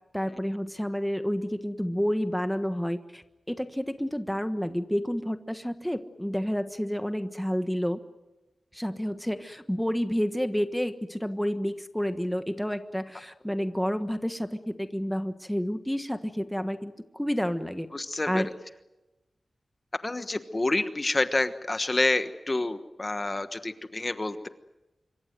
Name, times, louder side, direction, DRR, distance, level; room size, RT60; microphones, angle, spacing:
voice 1, 0.1-8.0 8.7-17.9 18.2-18.5, equal, 5° left, 9 dB, 1.4 m, -30 dB
voice 2, 17.9-18.5 20.0-24.5, left 2 dB, 30° left, 10 dB, 1.3 m, -28 dB
26.5 x 24.0 x 7.8 m, 1.0 s
wide cardioid pair, 110°, 0 cm